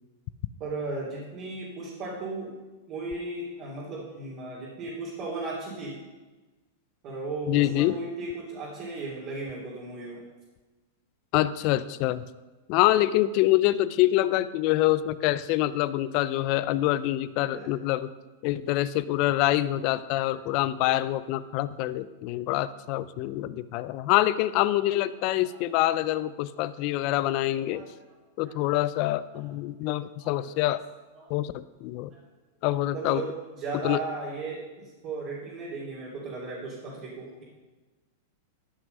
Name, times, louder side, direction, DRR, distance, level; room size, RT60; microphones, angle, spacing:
voice 1, 0.6-2.5 2.9-6.0 7.0-10.2 17.5-17.7 19.6-19.9 20.3-20.4 20.9-21.1 22.3-22.4 25.4-25.6 26.8-26.9 27.6-27.9 28.4-28.5 29.3-29.4 30.2-30.7 31.1-31.3 32.9-37.4, right 3 dB, 40° right, -6 dB, 3.1 m, -36 dB
voice 2, 7.5-8.0 11.3-12.2 12.7-18.1 18.4-27.8 28.4-30.8 31.3-32.1 32.6-33.2 33.8-34.0, left 15 dB, 50° left, 16 dB, 0.5 m, -25 dB
12.5 x 6.1 x 5.5 m, 1.2 s
hypercardioid pair, 125°, 0 cm